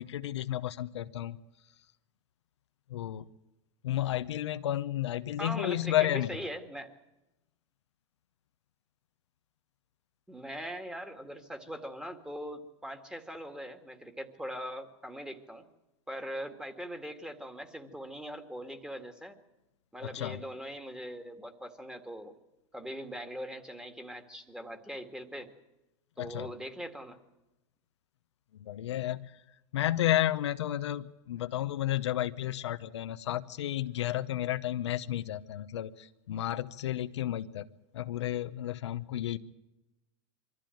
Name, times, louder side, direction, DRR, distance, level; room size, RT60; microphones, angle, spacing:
voice 1, 0.0-1.4 2.9-3.3 3.8-6.4 20.0-20.4 26.2-26.5 28.6-29.4 29.7-37.7 37.9-39.4, left 13 dB, 90° left, 10 dB, 0.8 m, -32 dB
voice 2, 5.4-6.9 10.3-15.7 16.1-19.4 19.9-22.3 22.7-25.5 26.2-27.2, equal, 5° right, 6 dB, 2.0 m, -41 dB
23.5 x 14.0 x 9.1 m, 0.98 s
hypercardioid pair, 115°, 14 cm